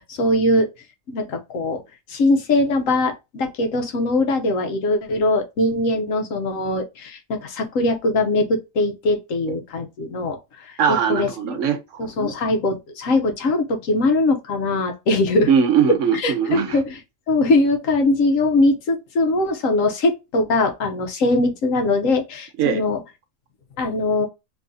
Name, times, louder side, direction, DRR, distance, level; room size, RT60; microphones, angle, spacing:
voice 1, 0.1-0.7 1.1-1.8 2.1-10.4 11.1-11.6 12.0-15.5 16.2-17.0 17.3-23.0 23.8-24.3, left 2 dB, 75° left, 1.2 m, -21 dB
voice 2, 10.8-12.1 15.5-16.8 22.6-22.8, right 7 dB, 70° right, 1.0 m, -20 dB
3.0 x 2.7 x 3.5 m
omnidirectional pair, 1.4 m